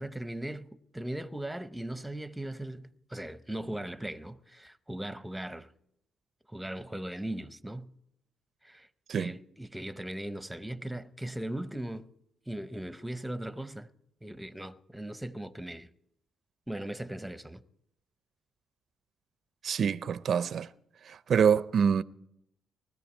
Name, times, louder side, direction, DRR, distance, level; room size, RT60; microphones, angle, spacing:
voice 1, 0.0-5.7 6.5-7.9 8.6-8.9 9.1-12.1 12.5-13.9 14.2-15.9 16.7-17.6, right 1 dB, 5° right, 0.8 m, -38 dB
voice 2, 19.6-20.7 21.0-22.0, right 7 dB, 55° right, 0.5 m, -26 dB
20.0 x 13.5 x 4.4 m
cardioid pair, 90°, 0 cm